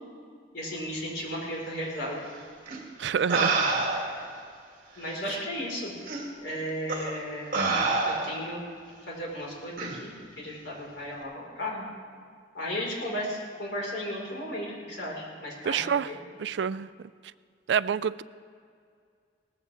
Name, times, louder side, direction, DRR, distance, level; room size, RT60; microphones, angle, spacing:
voice 1, 0.5-2.2 5.0-5.9 6.4-7.5 8.0-8.6 9.1-11.8 12.5-16.2, equal, 75° left, -4 dB, 4.7 m, -35 dB
sound 1, 2.7-2.8 3.3-4.2 5.1-5.2 6.1-6.2 6.9-7.1 7.5-8.5 9.8-10.0, right 3 dB, 50° right, 2.4 m, -27 dB
voice 2, 3.0-3.6 15.6-16.1 16.4-16.9 17.7-18.2, right 7 dB, 70° right, 17 dB, 0.3 m, -27 dB
18.5 x 14.5 x 3.5 m, 2.2 s
head